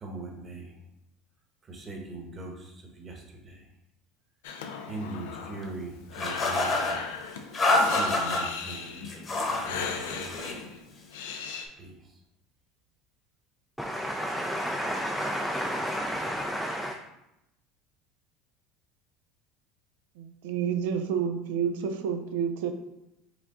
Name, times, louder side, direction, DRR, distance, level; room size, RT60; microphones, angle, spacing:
voice 1, 0.0-0.6 1.9-2.5 3.0-3.1 4.9-6.7 8.0-8.9 9.7-10.0 11.8-11.9, right 2 dB, 35° right, 1 dB, 1.1 m, -39 dB
Breathing, 4.4-11.7, left 6 dB, 90° left, 0.4 m, -38 dB
sound 1, 6.2-7.0 7.5-8.4 9.0-9.7 10.0-10.6, left 2 dB, 30° left, 1.1 m, -26 dB
voice 2, 13.8-16.9, equal, ahead, 1 dB, 0.4 m, -31 dB
voice 3, 20.2-22.7, right 7 dB, 80° right, 7 dB, 0.4 m, -29 dB
4.9 x 2.3 x 3.8 m, 0.88 s
supercardioid pair, 100°, 0 cm